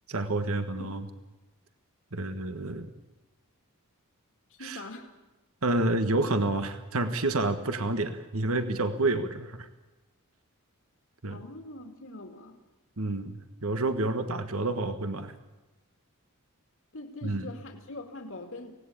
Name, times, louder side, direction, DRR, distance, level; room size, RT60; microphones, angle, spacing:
voice 1, 0.1-1.0 2.1-2.9 4.6-4.8 5.6-9.7 11.2-11.4 13.0-15.3 17.2-17.5, right 2 dB, 65° right, 9 dB, 1.5 m, -29 dB
voice 2, 4.6-5.1 11.3-12.6 16.9-18.7, left 2 dB, 60° left, 4 dB, 2.4 m, -42 dB
25.0 x 18.0 x 8.6 m, 1.1 s
head